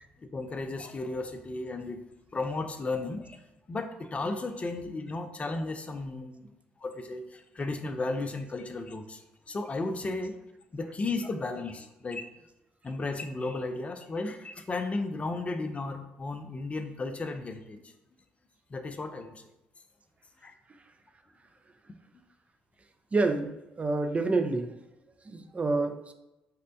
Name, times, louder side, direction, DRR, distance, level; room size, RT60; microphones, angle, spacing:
voice 1, 0.2-2.0 2.3-3.4 3.7-6.5 6.8-10.4 10.7-12.2 12.8-17.8 18.7-19.3 20.4-20.5 21.9-22.0, left 3 dB, 30° left, 8 dB, 0.4 m, -34 dB
voice 2, 23.1-24.7 25.3-26.1, right 3 dB, 30° right, 7 dB, 0.4 m, -28 dB
4.2 x 2.1 x 2.6 m, 0.95 s
hypercardioid pair, 55°, 4 cm